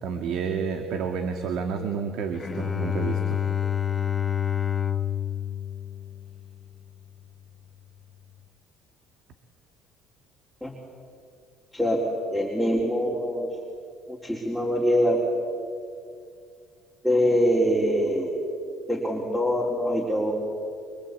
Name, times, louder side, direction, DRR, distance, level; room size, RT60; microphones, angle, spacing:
voice 1, 0.0-3.4, right 6 dB, 70° right, 6 dB, 2.1 m, -30 dB
Bowed string instrument, 2.3-6.8, left 9 dB, 25° left, 1.2 m, -28 dB
voice 2, 12.3-13.5 14.1-15.2 17.0-18.4 18.9-20.3, equal, ahead, -2 dB, 4.3 m, -24 dB
26.0 x 25.0 x 8.5 m, 2.4 s
cardioid pair, 100°, 0 cm